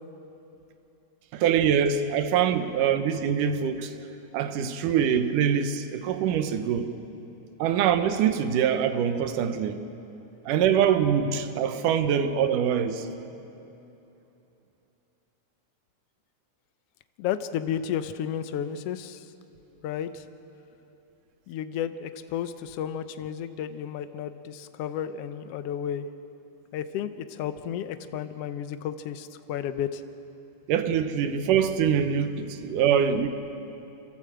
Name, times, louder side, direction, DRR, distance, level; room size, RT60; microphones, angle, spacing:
voice 1, 1.3-4.0 4.3-6.9 7.6-9.8 10.5-13.1 30.7-33.3, right 8 dB, 85° right, 2.5 m, -24 dB
voice 2, 17.2-19.3 19.8-20.2 21.5-26.1 26.7-30.0, left 9 dB, 80° left, 1.3 m, -32 dB
29.0 x 13.0 x 7.7 m
omnidirectional pair, 3.6 m